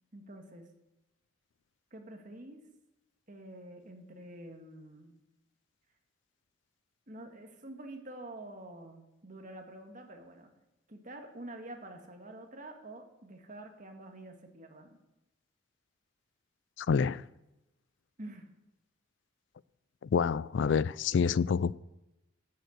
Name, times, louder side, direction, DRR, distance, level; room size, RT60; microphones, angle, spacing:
voice 1, 0.1-0.7 1.9-2.6 3.3-5.2 7.1-10.5 10.9-15.0 18.2-18.5, right 1 dB, 40° right, 1.7 m, -47 dB
voice 2, 16.8-17.2 20.1-21.7, left 6 dB, 65° left, 0.3 m, -27 dB
13.0 x 6.6 x 8.0 m
head